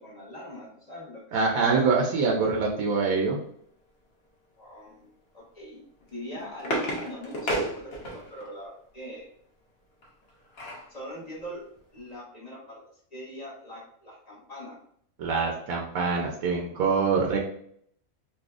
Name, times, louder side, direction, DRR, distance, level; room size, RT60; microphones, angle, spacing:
voice 1, 0.0-1.7 4.6-5.1 5.3-5.8 6.1-9.3 10.9-12.8 13.1-14.8, equal, 30° left, -5 dB, 1.2 m, -42 dB
voice 2, 1.3-3.4 15.2-17.4, right 4 dB, 80° right, -1 dB, 1.1 m, -25 dB
sound 1, 6.0-8.5 10.0-10.9 11.4-11.5 11.8-12.0, right 1 dB, 50° left, 1.0 m, -32 dB
4.1 x 2.7 x 2.3 m, 0.65 s
omnidirectional pair, 1.5 m